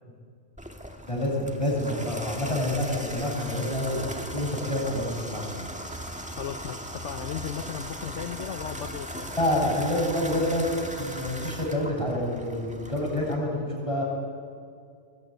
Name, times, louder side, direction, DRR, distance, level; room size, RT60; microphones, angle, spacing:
Water tap faucet / Bathtub (filling or washing), 0.6-13.4, equal, 5° right, 1.8 m, -38 dB
voice 1, 1.0-5.5 9.3-10.6 11.0-14.0, left 1 dB, 25° left, -2 dB, 8.1 m, -28 dB
voice 2, 6.4-9.3, left 8 dB, 70° left, 7 dB, 1.3 m, -36 dB
25.5 x 22.0 x 9.4 m, 2.3 s
omnidirectional pair, 1.3 m